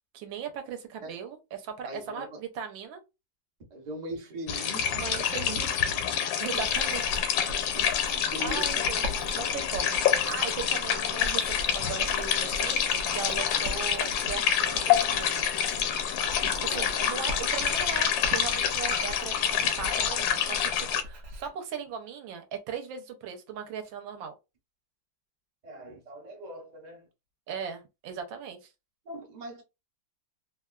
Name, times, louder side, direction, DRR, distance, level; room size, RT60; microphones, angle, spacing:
voice 1, 0.1-3.0 4.9-5.8 6.1-7.0 8.4-10.0 10.2-15.5 16.4-24.3 27.5-28.7, right 7 dB, 85° right, 1.4 m, -38 dB
voice 2, 1.8-2.4 3.7-5.0 7.7-8.9 16.7-17.1 19.6-19.7 25.6-27.1 29.0-29.6, right 1 dB, 50° right, 0.5 m, -40 dB
sound 1, 4.5-21.0, left 8 dB, 80° left, 1.3 m, -27 dB
Writing, 6.4-21.5, equal, 65° right, 0.9 m, -41 dB
3.3 x 2.3 x 2.2 m
omnidirectional pair, 2.1 m